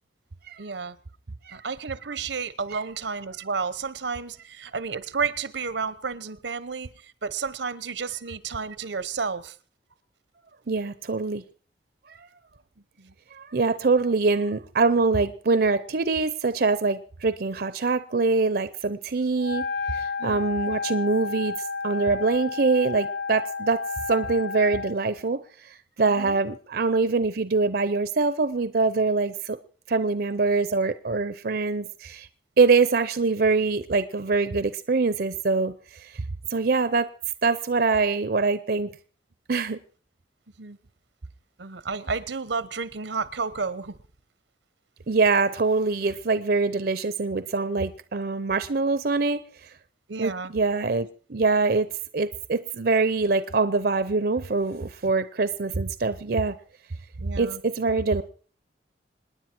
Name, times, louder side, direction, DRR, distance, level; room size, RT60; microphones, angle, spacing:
voice 1, 0.6-1.0 1.5-9.5 13.0-13.1 20.2-20.4 26.0-26.4 40.6-40.8 41.6-43.9 50.1-50.5 57.2-57.6, right 5 dB, 85° right, 0.9 m, -31 dB
voice 2, 10.7-11.4 12.1-12.3 13.3-21.6 21.8-23.8 24.1-29.6 29.9-32.3 32.6-36.2 36.5-37.1 37.4-38.9 39.5-39.8 45.1-49.7 50.2-51.9 52.1-56.6 57.4-58.3, right 4 dB, 55° right, 0.6 m, -24 dB
Wind instrument woodwind instrument, 19.4-25.0, left 4 dB, 80° left, 0.8 m, -31 dB
26.5 x 10.0 x 4.5 m
head